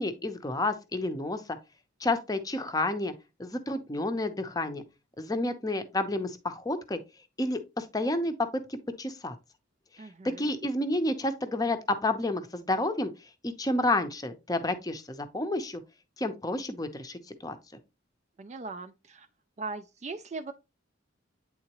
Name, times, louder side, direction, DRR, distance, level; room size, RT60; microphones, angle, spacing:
voice 1, 0.0-1.4 2.0-3.1 3.4-4.8 5.2-7.0 7.4-8.3 8.7-9.3 10.2-13.1 13.4-15.8 16.2-17.6, left 2 dB, 20° left, 0.6 m, -30 dB
voice 2, 10.0-10.5 18.4-19.3 19.6-20.5, right 3 dB, 35° right, 0.3 m, -39 dB
8.8 x 3.7 x 2.9 m
head